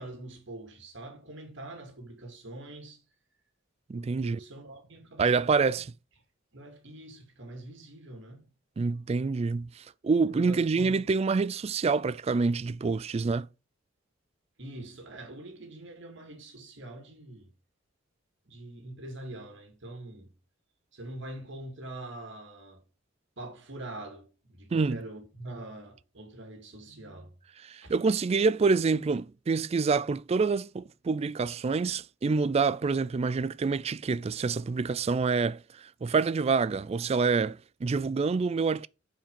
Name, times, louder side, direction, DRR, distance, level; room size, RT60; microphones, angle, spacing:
voice 1, 0.0-3.0 3.9-5.9 6.5-8.5 10.2-11.1 14.6-17.5 18.5-20.3 20.9-22.8 23.4-27.3 27.8-27.9, right 1 dB, 65° right, 2.3 m, -44 dB
voice 2, 3.9-4.4 5.2-5.9 8.8-13.5 24.7-25.0 27.7-38.9, right 4 dB, 30° right, 0.3 m, -27 dB
8.6 x 5.0 x 5.3 m
head